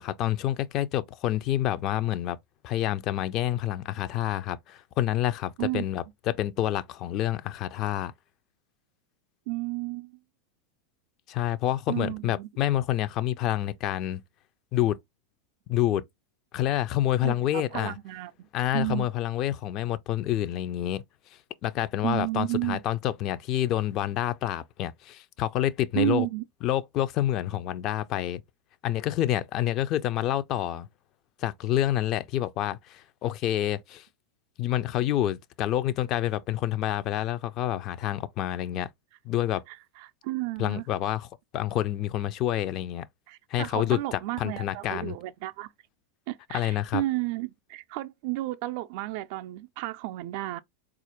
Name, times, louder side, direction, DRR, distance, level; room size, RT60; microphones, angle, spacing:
voice 1, 0.0-2.4 2.6-8.1 11.3-14.2 14.7-15.0 15.7-16.0 16.5-18.0 18.5-21.0 21.6-26.3 26.6-28.4 28.8-30.9 31.4-34.1 34.6-38.9 39.2-39.6 40.6-41.3 41.5-43.1 43.5-45.2 46.5-47.0, left 12 dB, 45° left, 0.4 m, -28 dB
voice 2, 9.5-10.2 11.9-12.5 17.2-18.5 18.7-19.1 22.0-22.8 25.9-26.4 39.7-40.8 43.3-45.7 46.3-50.6, right 17 dB, 60° right, 0.3 m, -32 dB
4.1 x 2.4 x 2.9 m
hypercardioid pair, 95°, 0 cm